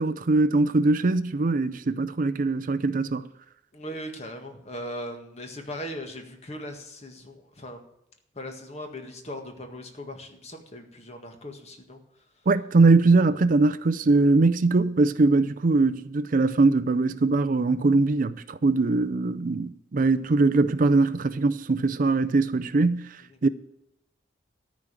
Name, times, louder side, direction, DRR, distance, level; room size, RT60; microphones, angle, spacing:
voice 1, 0.0-3.3 12.5-23.1 23.4-23.5, right 3 dB, 50° right, 0.5 m, -21 dB
voice 2, 3.7-7.9 8.3-12.0, equal, 35° left, 1.8 m, -39 dB
13.5 x 5.2 x 8.8 m
head